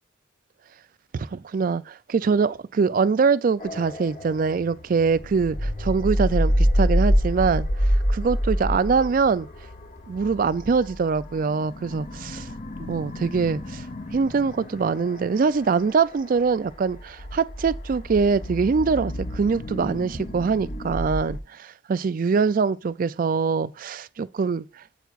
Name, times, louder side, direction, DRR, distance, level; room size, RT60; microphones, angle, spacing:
voice 1, 1.1-7.7 8.1-9.5 10.1-12.5 12.9-13.8 14.1-24.6, right 5 dB, 45° right, 0.3 m, -23 dB
sound 1, 3.6-21.4, equal, 40° left, 0.8 m, -28 dB
9.1 x 8.0 x 2.5 m
head